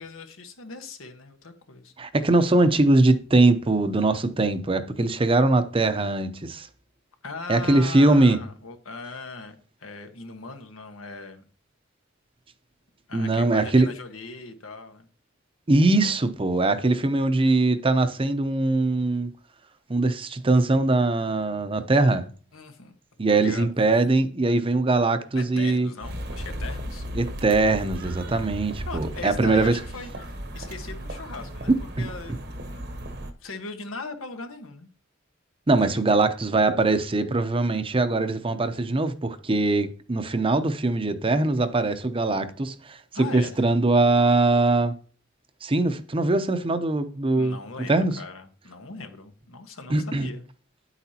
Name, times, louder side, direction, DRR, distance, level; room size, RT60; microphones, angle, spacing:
voice 1, 0.0-1.9 7.2-11.4 13.1-15.1 22.5-22.9 23.3-23.7 25.3-27.1 28.9-31.7 32.0-32.4 32.7-32.8 33.4-34.9 35.8-36.0 43.1-43.6 47.3-50.4, left 3 dB, 90° left, 1.3 m, -39 dB
voice 2, 2.0-6.7 7.5-8.4 13.1-13.9 15.7-19.3 19.9-22.3 23.2-25.9 27.1-29.8 31.7-32.1 35.7-43.0 43.3-44.9 45.6-47.6 47.9-48.2 49.9-50.3, right 2 dB, 25° right, 0.7 m, -22 dB
london traffic, 26.0-33.3, right 1 dB, 55° right, 1.0 m, -35 dB
9.7 x 8.1 x 2.9 m
head